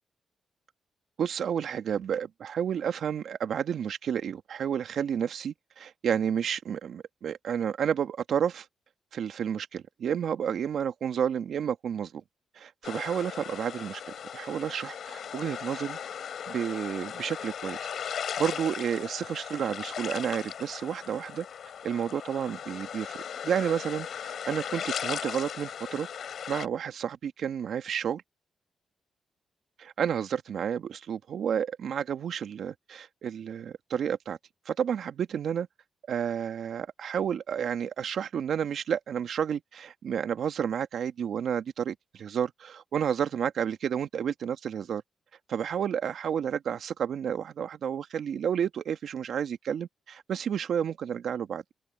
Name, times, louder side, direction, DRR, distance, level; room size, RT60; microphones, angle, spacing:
voice 1, 1.2-8.7 9.1-12.2 12.6-14.0 14.3-16.0 16.5-17.8 18.4-21.5 21.8-23.2 23.4-26.1 26.5-28.2 29.8-34.4 34.7-35.7 36.1-45.0 45.5-51.6, right 8 dB, 70° right, 1.8 m, -31 dB
sound 1, 12.8-26.7, left 8 dB, 70° left, 3.6 m, -37 dB
cardioid pair, 60°, 0 cm